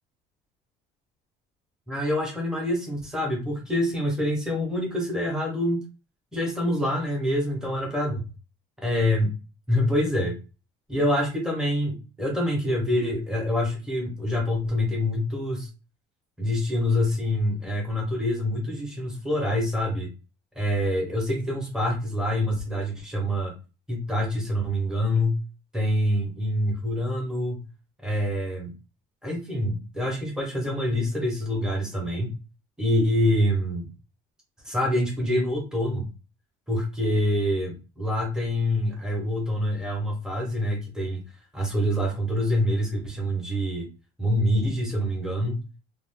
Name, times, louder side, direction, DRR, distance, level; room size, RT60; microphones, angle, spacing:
voice 1, 1.9-5.8 6.3-8.2 8.8-9.3 9.7-10.3 10.9-15.7 16.4-20.1 20.5-23.5 23.9-25.4 25.7-27.6 28.0-28.7 29.2-32.3 32.8-33.9 34.6-36.1 36.7-41.2 41.5-43.9 44.2-45.6, left 1 dB, 5° right, -1 dB, 0.9 m, -26 dB
2.5 x 2.3 x 3.5 m, 0.31 s
cardioid pair, 170°, 17 cm